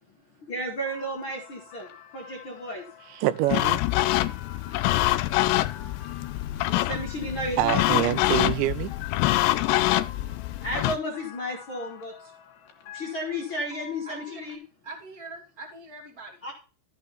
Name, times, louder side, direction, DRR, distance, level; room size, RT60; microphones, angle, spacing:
voice 1, 0.4-2.8 6.6-8.0 10.6-12.1 12.9-14.6 16.4-16.5, equal, 40° left, 1.9 m, -33 dB
sound 1, 0.8-14.6, left 6 dB, 60° left, 3.5 m, -48 dB
voice 2, 3.1-3.8 5.4-5.6 7.6-8.9, right 15 dB, 85° right, 2.9 m, -26 dB
sound 2, 3.5-11.0, left 16 dB, 85° left, 2.7 m, -25 dB
voice 3, 14.1-14.4 14.8-16.3, right 2 dB, 30° right, 2.1 m, -42 dB
13.0 x 6.9 x 4.1 m
omnidirectional pair, 5.1 m